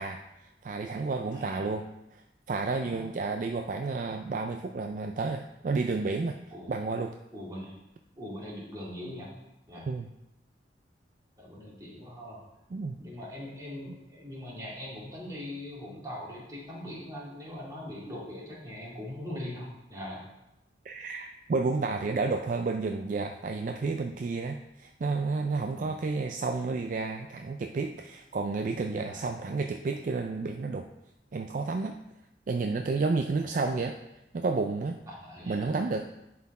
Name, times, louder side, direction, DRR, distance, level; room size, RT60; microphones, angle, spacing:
voice 1, 0.0-6.4 6.7-7.1 9.9-10.1 12.7-13.0 20.8-30.9 31.3-32.0 32.5-34.0 34.3-35.0 35.5-36.0, right 3 dB, 50° right, 5 dB, 0.4 m, -31 dB
voice 2, 1.3-1.6 2.8-3.0 6.5-6.7 7.3-7.7 8.2-9.3 9.7-9.9 11.4-12.4 13.0-20.3 25.7-25.9 29.0-29.3 33.3-33.5 35.1-35.7, left 1 dB, 20° right, -5 dB, 2.2 m, -41 dB
10.5 x 4.3 x 4.2 m, 0.91 s
head